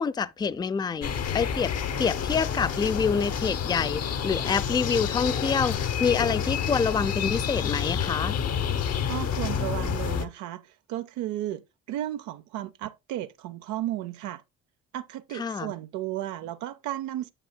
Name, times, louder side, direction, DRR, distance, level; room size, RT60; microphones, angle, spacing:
voice 1, 0.0-1.7 2.0-8.4 15.3-15.7, left 6 dB, 15° left, 0.4 m, -27 dB
sound 1, 1.0-10.3, left 7 dB, 55° left, 1.0 m, -29 dB
voice 2, 9.1-11.6 11.9-14.4 14.9-17.3, right 13 dB, 75° right, 0.6 m, -34 dB
8.9 x 7.1 x 2.2 m
supercardioid pair, 80°, 30 cm